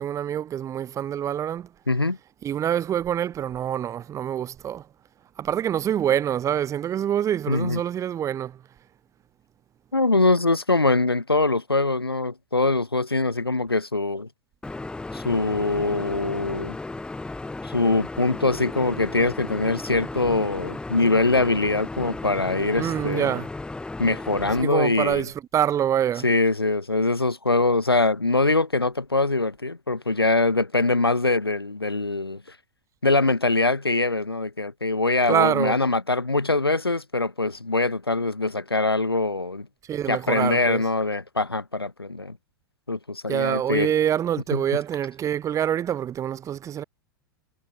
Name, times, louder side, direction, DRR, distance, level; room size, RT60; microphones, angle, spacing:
voice 1, 0.0-1.7 2.4-4.9 5.4-8.6 22.8-23.5 24.6-26.3 35.3-35.8 39.9-40.8 43.3-46.8, right 10 dB, 25° right, 6.6 m, -25 dB
voice 2, 1.9-2.2 7.5-7.8 9.9-14.3 15.1-16.8 17.6-23.4 24.0-25.3 26.2-32.6 33.0-39.7 40.1-42.4 42.9-43.9 44.5-44.6, left 2 dB, 85° left, 1.9 m, -23 dB
sound 1, 14.6-24.6, left 2 dB, 5° left, 4.6 m, -35 dB
figure-of-eight pair, 95°, 12 cm